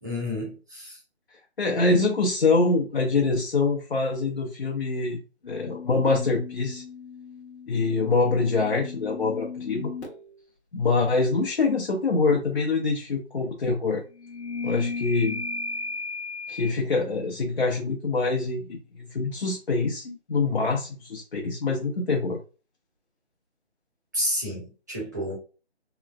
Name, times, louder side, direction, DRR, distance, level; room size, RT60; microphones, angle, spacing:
voice 1, 0.0-1.0 24.1-25.4, equal, 15° right, 0.8 m, -30 dB
voice 2, 1.6-5.2 5.5-6.8 7.7-9.9 10.7-14.0 14.6-15.4 16.5-22.4, left 3 dB, 55° left, 0.7 m, -25 dB
sound 1, 5.4-10.3 14.1-16.7, left 4 dB, 75° left, 1.0 m, -36 dB
3.0 x 2.1 x 2.4 m
figure-of-eight pair, 165°, 33 cm